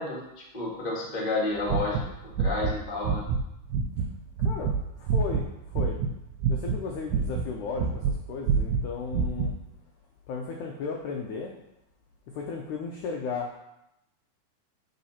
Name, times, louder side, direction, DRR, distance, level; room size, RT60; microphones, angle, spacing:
voice 1, 0.0-2.0 2.2-3.2, left 2 dB, 45° left, -5 dB, 0.5 m, -31 dB
sound 1, 1.6-2.8 3.0-3.4 3.7-6.1 6.4-8.2 8.5-9.5, right 5 dB, 85° right, 2.4 m, -26 dB
voice 2, 4.4-6.0 6.5-9.6 10.3-11.5 12.3-13.6, left 5 dB, 90° left, 1 dB, 1.7 m, -35 dB
6.8 x 4.1 x 5.6 m, 0.86 s
omnidirectional pair, 4.4 m